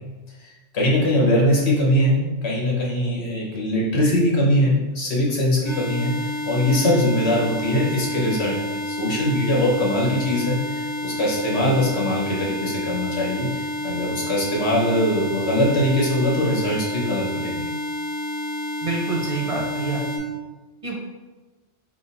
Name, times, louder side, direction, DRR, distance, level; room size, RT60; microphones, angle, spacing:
voice 1, 0.7-8.6 8.8-17.7, left 1 dB, 65° left, -3 dB, 1.5 m, -22 dB
sound 1, 5.6-20.2, left 1 dB, 30° left, 0.8 m, -29 dB
voice 2, 18.8-20.3 20.8-21.0, right 3 dB, 35° right, -2 dB, 0.6 m, -27 dB
3.7 x 3.1 x 4.1 m, 1.2 s
omnidirectional pair, 1.2 m